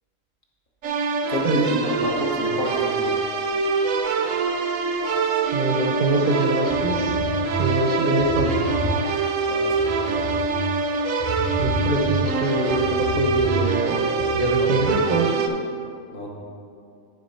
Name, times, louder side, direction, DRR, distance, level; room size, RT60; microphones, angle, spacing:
sound 1, 0.8-15.5, right 4 dB, 80° right, 1.0 m, -24 dB
voice 1, 1.3-3.2 9.5-10.3 14.4-14.7 16.1-16.3, left 1 dB, 45° left, -2 dB, 1.1 m, -30 dB
sound 2, 1.9-13.5, left 4 dB, 65° left, 0.9 m, -40 dB
voice 2, 5.5-7.2 7.6-8.6 11.6-14.1 14.3-15.5, right 2 dB, 50° right, 1 dB, 0.7 m, -24 dB
sound 3, 6.4-15.0, equal, 25° left, 0.7 m, -30 dB
10.5 x 3.8 x 5.4 m, 2.5 s
omnidirectional pair, 1.4 m